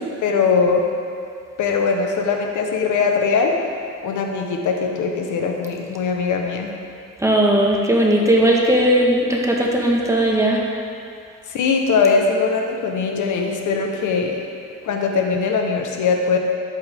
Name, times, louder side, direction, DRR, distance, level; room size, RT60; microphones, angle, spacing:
voice 1, 0.2-0.8 1.6-3.6 4.0-6.7 11.5-14.4 14.8-16.4, left 5 dB, 75° left, 2 dB, 1.3 m, -20 dB
voice 2, 7.2-10.6, right 1 dB, 10° right, -2 dB, 1.6 m, -17 dB
11.5 x 8.8 x 3.7 m, 2.4 s
cardioid pair, 90°, 30 cm